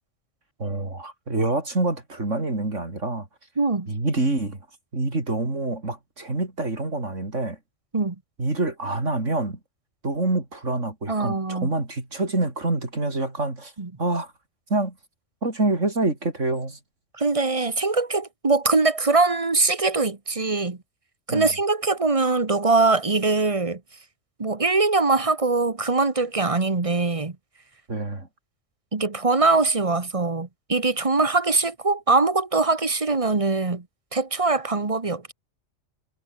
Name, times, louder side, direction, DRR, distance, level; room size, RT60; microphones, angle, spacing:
voice 1, 0.6-3.3 3.9-4.6 4.9-7.6 8.4-9.6 10.0-13.7 14.0-14.3 14.7-14.9 15.4-16.8 21.3-21.5 27.9-28.3, right 2 dB, 70° right, 5.1 m, -26 dB
voice 2, 3.6-3.9 7.9-8.2 11.1-11.7 13.8-13.9 17.2-20.8 21.3-23.8 24.4-27.4 28.9-33.8 34.1-35.3, right 3 dB, 25° right, 1.4 m, -22 dB
omnidirectional pair, 1.3 m